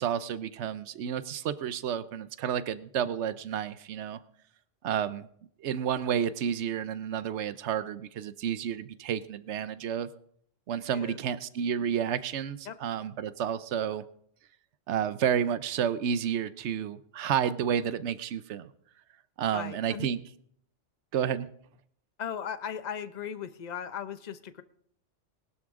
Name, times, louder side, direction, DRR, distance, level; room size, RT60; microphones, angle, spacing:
voice 1, 0.0-4.2 4.8-5.3 5.6-10.1 10.7-14.0 14.9-18.7 19.4-20.2 21.1-21.5, right 8 dB, 70° right, 14 dB, 1.0 m, -30 dB
voice 2, 19.5-20.1 22.2-24.6, left 8 dB, 40° left, 12 dB, 0.8 m, -37 dB
20.5 x 12.0 x 3.7 m, 0.66 s
omnidirectional pair, 1.2 m